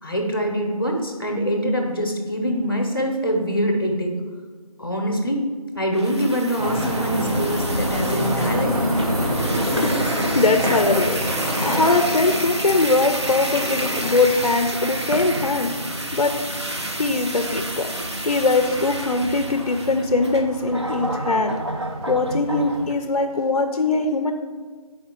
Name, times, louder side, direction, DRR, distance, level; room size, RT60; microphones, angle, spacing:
voice 1, 0.0-4.2 4.8-5.4 5.7-8.8 18.9-19.0, equal, 35° left, 2 dB, 0.8 m, -24 dB
sound 1, 5.9-22.9, right 1 dB, 45° right, 0.5 m, -30 dB
sound 2, 6.6-22.9, equal, 90° right, 1.7 m, -28 dB
voice 2, 10.3-11.2 11.6-15.7 16.1-16.3 17.0-17.9 18.3-21.6 22.1-24.3, left 3 dB, 65° left, 6 dB, 0.4 m, -21 dB
5.0 x 4.3 x 4.4 m, 1.5 s
figure-of-eight pair, 175°, 20 cm